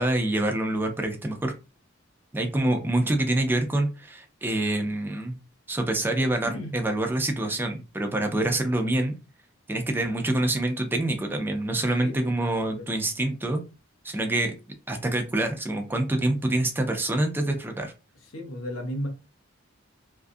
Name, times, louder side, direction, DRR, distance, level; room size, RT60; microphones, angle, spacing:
voice 1, 0.0-1.5 2.3-5.4 5.7-9.1 9.7-13.6 14.0-14.5 14.9-17.9, right 1 dB, 10° right, 0.4 m, -26 dB
voice 2, 6.4-6.8 12.0-12.9 18.3-19.1, equal, 75° left, 0.8 m, -35 dB
2.5 x 2.3 x 2.5 m
head